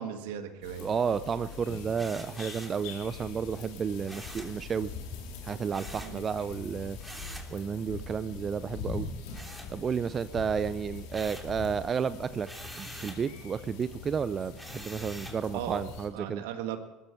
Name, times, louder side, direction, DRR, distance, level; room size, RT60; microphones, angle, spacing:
voice 1, 0.0-0.9 6.0-6.2 15.5-15.8 16.1-16.8, right 10 dB, 75° right, 7 dB, 1.9 m, -37 dB
sound 1, 0.6-16.1, left 5 dB, 70° left, 3.8 m, -43 dB
voice 2, 0.8-4.9 5.4-9.1 9.7-12.5 12.8-16.4, right 6 dB, 35° right, 14 dB, 0.6 m, -32 dB
sound 2, 1.9-2.8 4.1-4.6 5.7-6.2 7.0-7.5 9.3-10.2 10.6-11.6 12.4-13.3 14.6-15.4, right 1 dB, 5° right, 3.2 m, -45 dB
21.0 x 13.5 x 4.6 m, 1.1 s
hypercardioid pair, 70°, 0 cm